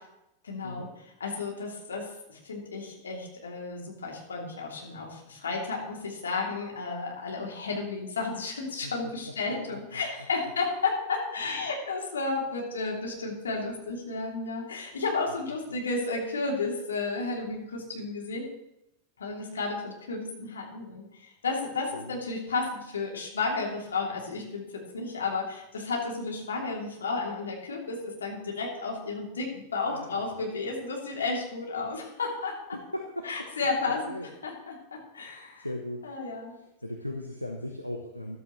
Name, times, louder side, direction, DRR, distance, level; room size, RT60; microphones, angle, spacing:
voice 1, 0.4-18.5 19.2-32.6 33.2-34.2 34.4-35.7 36.0-36.5, left 3 dB, 70° left, -1 dB, 2.9 m, -32 dB
voice 2, 9.7-10.0 21.9-22.2 29.8-30.3 32.7-33.3 34.1-34.3 35.6-36.0 36.8-38.4, left 1 dB, 90° left, 2 dB, 1.0 m, -37 dB
14.0 x 12.5 x 3.1 m, 0.85 s
figure-of-eight pair, 90°, 0 cm